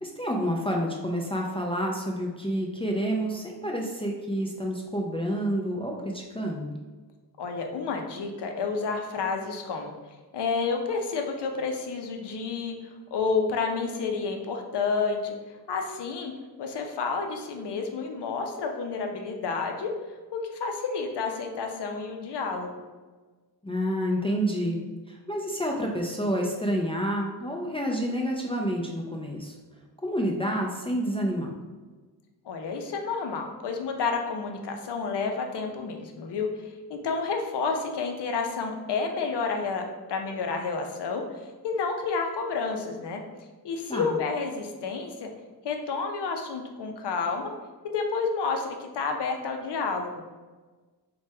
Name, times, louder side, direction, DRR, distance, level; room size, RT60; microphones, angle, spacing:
voice 1, 0.0-6.8 23.6-24.8 25.1-29.5 30.0-31.5 43.9-44.1, equal, 15° left, -1 dB, 0.3 m, -29 dB
voice 2, 7.4-9.9 10.3-12.7 13.1-15.4 15.7-16.3 16.6-19.9 20.3-22.8 32.5-36.5 36.9-41.2 41.6-43.2 43.6-45.3 45.6-47.5 47.8-50.2, left 4 dB, 85° left, 3 dB, 0.5 m, -30 dB
3.2 x 2.2 x 2.7 m, 1.3 s
wide cardioid pair, 75°, 40 cm